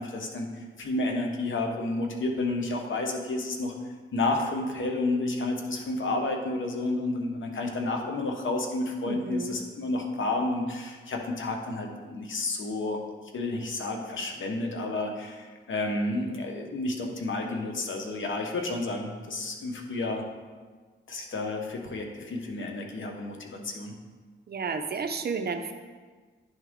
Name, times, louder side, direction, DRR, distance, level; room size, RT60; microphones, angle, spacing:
voice 1, 0.0-3.7 4.1-13.0 13.3-20.2 21.1-23.9, left 2 dB, 75° left, 2 dB, 1.0 m, -31 dB
voice 2, 9.1-9.5 24.5-25.7, right 5 dB, 50° right, 7 dB, 0.6 m, -32 dB
10.5 x 3.6 x 3.6 m, 1.5 s
cardioid pair, 85°, 20 cm